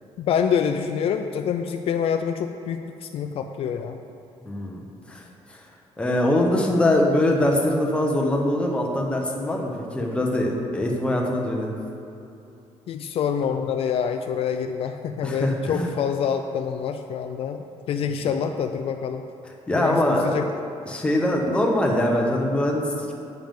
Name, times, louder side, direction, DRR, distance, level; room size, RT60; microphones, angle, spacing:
voice 1, 0.2-4.0 12.9-19.2 19.7-20.5, left 7 dB, 55° left, 6 dB, 0.4 m, -26 dB
voice 2, 4.4-5.2 5.5-5.6 6.0-11.8 15.2-15.9 19.7-20.2 20.9-23.1, left 1 dB, 10° left, -1 dB, 1.0 m, -23 dB
10.5 x 8.9 x 3.8 m, 2.8 s
cardioid pair, 170°, 11 cm